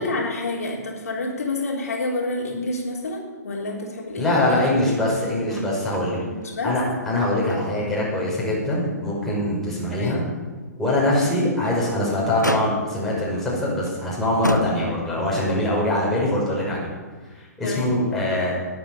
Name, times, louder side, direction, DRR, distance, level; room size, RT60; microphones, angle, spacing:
voice 1, 0.0-4.7 6.2-6.8 9.9-10.2 17.6-17.9, left 2 dB, 60° left, -2 dB, 3.6 m, -28 dB
voice 2, 4.2-6.2 6.6-10.2 10.8-16.9 17.3-18.6, left 1 dB, 5° left, -7 dB, 5.8 m, -23 dB
Motor vehicle (road), 5.5-6.1 6.4-6.5 7.0-8.0 8.4-8.5 9.1-9.2 11.4-11.9 12.4-13.1 13.9-14.0 14.4-15.2 16.3-16.4, left 1 dB, 90° left, 1.1 m, -29 dB
20.0 x 8.7 x 7.0 m, 1.4 s
figure-of-eight pair, 120°, 9 cm